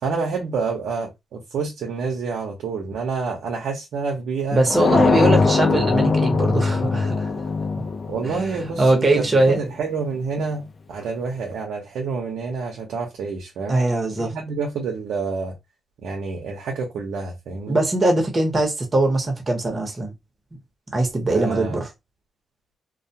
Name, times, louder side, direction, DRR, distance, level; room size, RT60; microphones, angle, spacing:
voice 1, 0.0-4.6 8.1-10.6 10.9-13.8 14.2-15.5 16.0-17.8 21.3-21.8, right 4 dB, 80° right, 0.7 m, -28 dB
voice 2, 4.5-7.3 8.2-9.6 13.7-14.3 17.7-20.1 20.9-21.9, right 2 dB, 35° right, 1.0 m, -21 dB
sound 1, 4.7-9.4, left 4 dB, 50° left, 0.5 m, -21 dB
2.3 x 2.2 x 2.7 m
cardioid pair, 75°, 0 cm